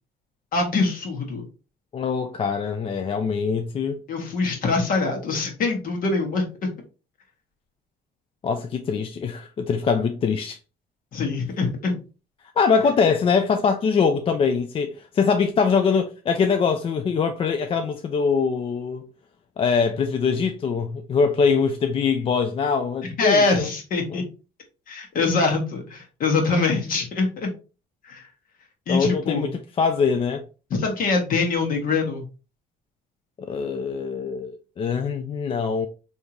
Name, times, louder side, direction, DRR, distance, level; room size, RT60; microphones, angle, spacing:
voice 1, 0.5-1.5 4.1-6.7 11.1-12.0 23.2-24.2 24.9-27.5 28.0-28.3 28.9-29.5 30.7-32.2, left 3 dB, 55° left, 1.3 m, -23 dB
voice 2, 1.9-4.0 8.4-10.6 12.6-19.1 19.6-23.7 24.1-24.2 28.9-29.5 29.8-30.5 33.4-35.9, left 5 dB, 35° left, 0.3 m, -23 dB
3.5 x 2.7 x 2.9 m
cardioid pair, 110°, 17 cm